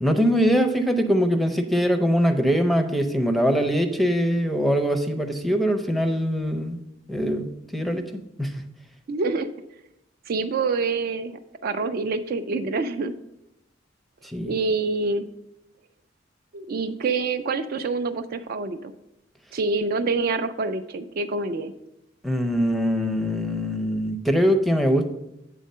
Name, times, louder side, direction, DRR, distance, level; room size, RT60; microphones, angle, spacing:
voice 1, 0.0-6.8 7.1-7.5 7.7-8.6 14.3-14.5 22.2-25.2, equal, ahead, 7 dB, 0.5 m, -22 dB
voice 2, 9.1-9.5 10.3-13.1 14.4-15.3 16.5-18.9 19.5-21.7, right 3 dB, 50° right, 9 dB, 0.4 m, -26 dB
8.4 x 3.6 x 5.4 m, 0.86 s
head